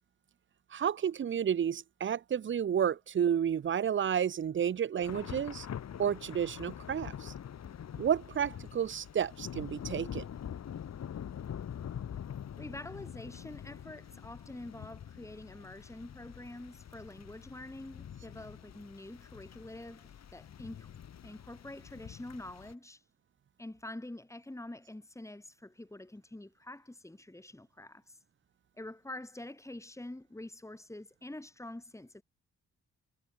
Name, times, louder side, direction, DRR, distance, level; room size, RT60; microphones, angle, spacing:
voice 1, 0.7-5.7 6.0-7.3 8.0-10.2, right 8 dB, 40° right, 0.9 m, -31 dB
Thunder / Rain, 5.0-22.7, left 9 dB, 60° left, 6.8 m, -45 dB
voice 2, 12.6-20.9 21.2-23.0 23.6-28.2 28.8-32.2, left 1 dB, 10° left, 6.4 m, -46 dB
cardioid pair, 90°, 30 cm